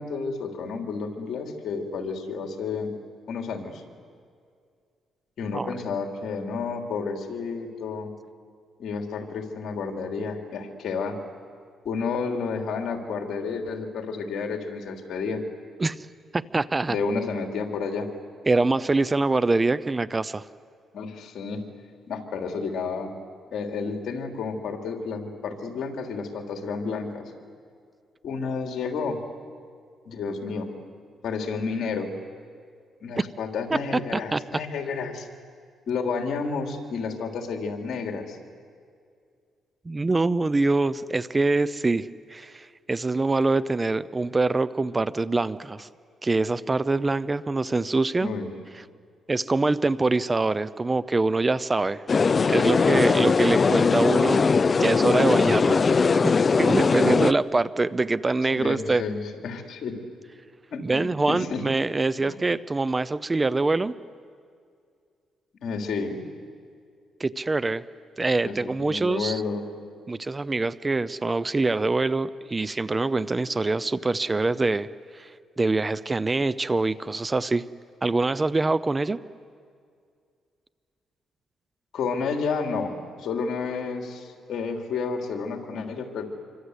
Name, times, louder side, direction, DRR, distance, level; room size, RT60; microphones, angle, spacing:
voice 1, 0.0-2.9 3.3-3.8 5.4-8.1 8.8-11.2 11.9-15.4 16.9-18.1 20.9-21.6 22.1-23.1 23.5-27.3 28.2-29.2 30.1-30.7 31.2-32.1 33.0-35.3 35.9-38.4 48.2-48.5 58.5-60.0 60.7-61.6 62.2-62.4 65.6-66.2 68.4-69.7 81.9-86.2, left 5 dB, 65° left, 3 dB, 3.5 m, -31 dB
voice 2, 16.3-17.0 18.5-20.4 33.2-33.3 33.7-33.8 34.1-34.4 39.9-45.9 46.2-48.3 49.3-52.0 52.5-55.8 56.2-59.0 60.8-63.9 67.2-67.8 68.2-69.4 70.1-74.9 75.1-75.3 75.6-77.6 78.0-79.2, right 3 dB, 20° right, 16 dB, 0.7 m, -24 dB
sound 1, 52.1-57.3, left 5 dB, 35° left, 0.6 m, -20 dB
27.0 x 25.0 x 8.2 m, 2.2 s
cardioid pair, 90°, 0 cm